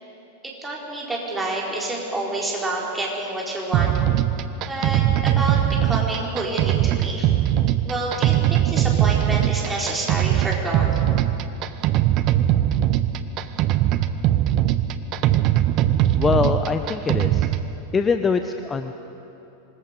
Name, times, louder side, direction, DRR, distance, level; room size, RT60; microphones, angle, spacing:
voice 1, 0.4-4.0 4.7-7.3 7.8-10.9, right 2 dB, 10° right, -3 dB, 4.5 m, -28 dB
sound 1, 3.7-17.7, right 12 dB, 40° right, 0.8 m, -20 dB
voice 2, 16.1-17.5 17.9-18.9, left 5 dB, 15° left, 8 dB, 0.7 m, -23 dB
25.5 x 20.5 x 5.3 m, 3.0 s
figure-of-eight pair, 90°, 0 cm